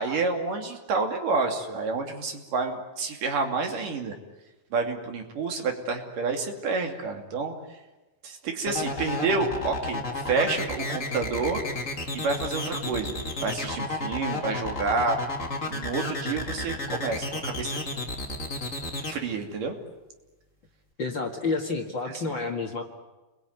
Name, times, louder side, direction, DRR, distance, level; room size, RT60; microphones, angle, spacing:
voice 1, 0.0-4.2 4.7-7.8 8.2-11.6 12.1-15.2 15.6-17.8 19.1-19.8 22.1-22.2, right 4 dB, 70° right, 3 dB, 4.4 m, -29 dB
sound 1, 8.7-19.1, left 2 dB, 25° left, 3.1 m, -32 dB
voice 2, 21.0-22.8, left 3 dB, 40° left, 2 dB, 2.3 m, -29 dB
29.0 x 21.5 x 9.5 m, 1.1 s
omnidirectional pair, 3.9 m